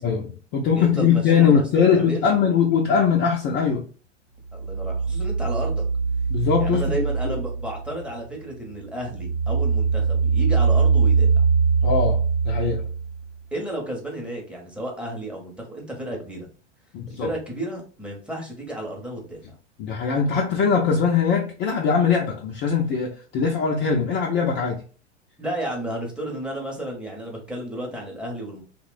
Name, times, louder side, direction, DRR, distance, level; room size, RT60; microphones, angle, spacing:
voice 1, 0.0-3.8 6.3-7.4 11.8-12.9 16.9-17.3 19.8-24.8, left 6 dB, 30° left, 0.4 m, -21 dB
voice 2, 0.7-2.3 4.5-5.8 6.6-11.4 13.5-16.5 17.1-19.5 25.4-28.6, right 1 dB, 5° right, 0.7 m, -32 dB
sound 1, 4.5-8.3 8.7-13.3, right 5 dB, 60° right, 0.8 m, -22 dB
2.9 x 2.1 x 2.4 m
hypercardioid pair, 100°, 36 cm